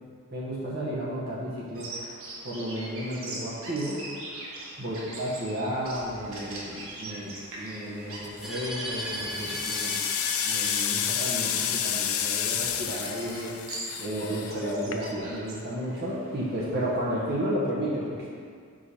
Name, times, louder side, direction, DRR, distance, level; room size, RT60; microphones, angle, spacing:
voice 1, 0.3-2.0 2.4-4.0 4.8-10.0 10.4-13.5 14.0-18.3, equal, 45° right, -7 dB, 1.1 m, -32 dB
Bird vocalization bird call bird song, 1.7-16.9, right 2 dB, 70° right, 1.3 m, -43 dB
sinking turning on and off, 8.2-8.6 9.1-15.4, left 9 dB, 75° left, 0.4 m, -30 dB
sound 1, 8.4-13.4, equal, ahead, 0.7 m, -38 dB
6.6 x 5.0 x 4.3 m, 2.1 s
head